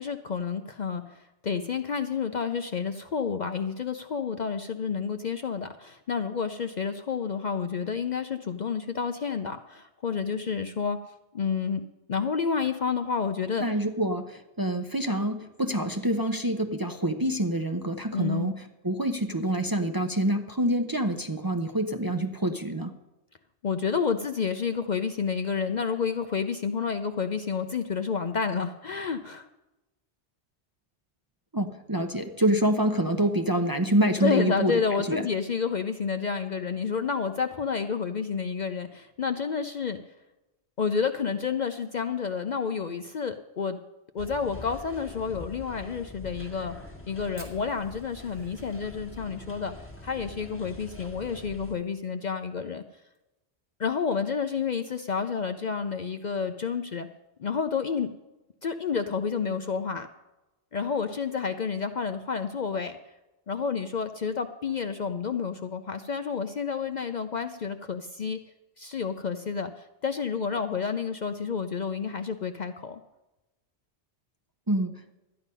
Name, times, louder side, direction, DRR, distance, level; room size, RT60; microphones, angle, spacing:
voice 1, 0.0-11.0 11.3-13.6 18.1-18.5 23.6-29.5 34.2-40.0 40.8-43.8 44.1-46.7 47.1-49.7 50.0-52.8 53.8-57.1 57.4-58.1 58.6-60.1 60.7-63.0 63.5-68.4 68.8-73.0, left 6 dB, 50° left, 7 dB, 0.6 m, -30 dB
voice 2, 13.6-22.9 31.5-35.3 74.7-75.0, right 1 dB, 25° right, 5 dB, 0.7 m, -27 dB
sound 1, 44.2-51.8, left 2 dB, 10° left, 1.5 m, -44 dB
Fire, 47.4-51.9 52.1-52.2 52.5-52.6 53.0-53.4 53.9-54.0 55.0-55.2, right 2 dB, 85° right, 2.6 m, -53 dB
13.0 x 9.9 x 5.4 m, 1.0 s
omnidirectional pair, 1.1 m